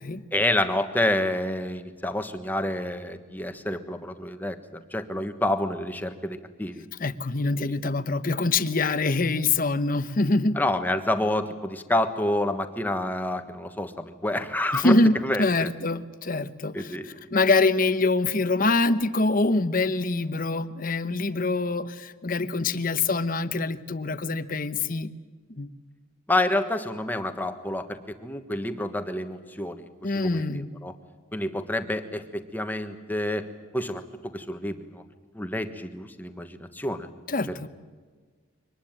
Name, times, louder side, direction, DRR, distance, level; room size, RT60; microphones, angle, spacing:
voice 1, 0.3-4.6 4.9-6.8 10.6-14.9 15.2-15.7 16.7-17.3 26.3-30.9 31.3-33.5 33.7-34.0 34.3-35.0 35.3-37.1, left 1 dB, 10° left, 7 dB, 1.3 m, -28 dB
voice 2, 7.0-10.6 14.7-25.1 25.5-25.7 30.0-30.7 37.3-37.7, left 3 dB, 45° left, 12 dB, 1.0 m, -25 dB
24.0 x 19.5 x 9.0 m, 1.5 s
head